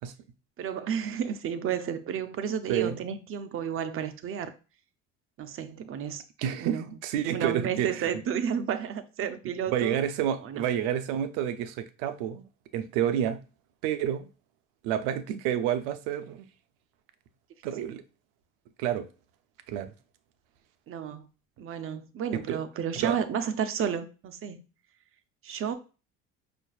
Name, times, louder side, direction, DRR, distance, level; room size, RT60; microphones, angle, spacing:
voice 1, 0.6-4.5 5.4-6.2 6.6-6.9 7.3-10.0 10.4-10.6 20.9-21.3 21.6-24.6 25.4-25.7, right 8 dB, 45° right, 0.6 m, -32 dB
voice 2, 6.4-8.2 9.7-12.5 12.7-13.4 13.8-14.3 14.8-16.5 17.6-18.0 18.8-19.1 19.7-19.9 22.5-22.6 22.9-23.2, right 10 dB, 85° right, 0.6 m, -29 dB
5.4 x 2.5 x 2.3 m
supercardioid pair, 85°, 30 cm